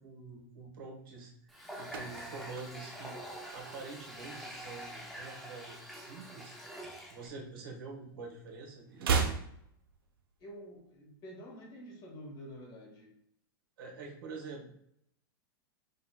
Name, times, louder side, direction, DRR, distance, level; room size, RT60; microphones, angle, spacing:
voice 1, 0.0-3.2 3.5-6.5 7.1-9.2 13.8-14.7, right 4 dB, 75° right, -1 dB, 1.3 m, -46 dB
Water tap faucet, 1.5-7.3, right 1 dB, ahead, 0.5 m, -46 dB
sound 1, 1.5-4.2 4.5-4.8 5.0-6.5 6.8-8.1 8.4-10.5 10.8-10.9, right 5 dB, 90° right, 0.7 m, -37 dB
voice 2, 10.4-13.1, equal, 35° left, 1 dB, 1.0 m, -48 dB
5.3 x 2.3 x 2.2 m, 0.73 s
supercardioid pair, 145°, 12 cm